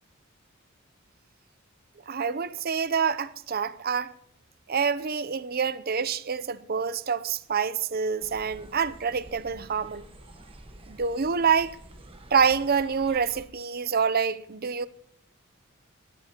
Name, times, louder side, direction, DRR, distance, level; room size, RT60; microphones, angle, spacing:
voice 1, 2.1-4.1 4.7-10.0 10.9-11.8 12.3-14.9, right 6 dB, 45° right, 0.6 m, -26 dB
sound 1, 8.2-13.5, right 1 dB, 25° right, 1.3 m, -49 dB
21.0 x 17.0 x 2.9 m
head